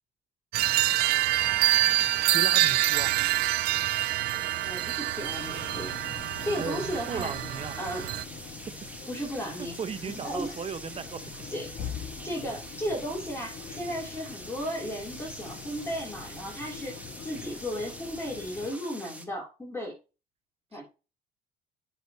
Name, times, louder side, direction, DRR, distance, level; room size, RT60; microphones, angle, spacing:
sound 1, 0.5-8.2, right 15 dB, 70° right, 0.4 m, -26 dB
sound 2, 1.4-19.3, right 1 dB, 10° right, 1.4 m, -45 dB
voice 1, 2.2-3.1 6.4-7.8 9.6-11.2 20.7-20.8, right 6 dB, 35° right, 0.8 m, -36 dB
voice 2, 4.6-5.9 6.4-7.3 7.8-8.1 9.1-9.8 10.0-10.6 11.5-11.7 12.2-16.9 17.2-20.0 20.7-20.8, equal, 15° left, 2.9 m, -35 dB
sound 3, 5.2-18.7, left 7 dB, 45° left, 1.6 m, -44 dB
8.0 x 6.0 x 2.8 m
cardioid pair, 110°, 17 cm